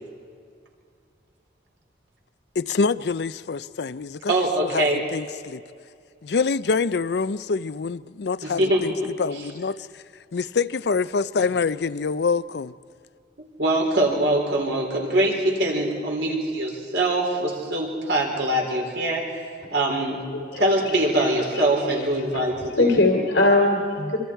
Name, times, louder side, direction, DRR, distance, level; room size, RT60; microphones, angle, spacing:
voice 1, 2.6-4.3 4.6-4.9 5.1-5.6 6.2-8.9 9.2-10.0 10.3-12.7, left 4 dB, 65° left, 0.5 m, -25 dB
voice 2, 4.3-5.0 8.4-9.4 13.6-20.2 20.6-22.9, right 1 dB, 70° right, 4.1 m, -23 dB
voice 3, 20.5-21.4 21.9-22.1 22.3-24.2, left 2 dB, 90° left, 2.6 m, -22 dB
25.5 x 25.5 x 4.6 m
head